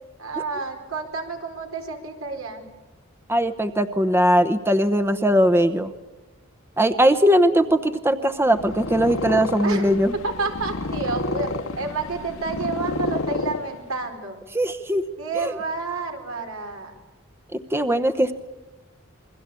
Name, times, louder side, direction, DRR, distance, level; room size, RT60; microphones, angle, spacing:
voice 1, 0.2-2.6 9.6-11.5 11.8-14.4 15.2-16.9, right 3 dB, 80° right, 4 dB, 4.5 m, -30 dB
voice 2, 3.3-5.9 6.8-10.1 14.5-15.0 15.3-15.5 17.5-18.3, equal, 10° right, 9 dB, 0.9 m, -20 dB
Purr, 8.4-14.1, left 2 dB, 85° left, 1.8 m, -30 dB
28.5 x 22.5 x 8.3 m, 1.1 s
head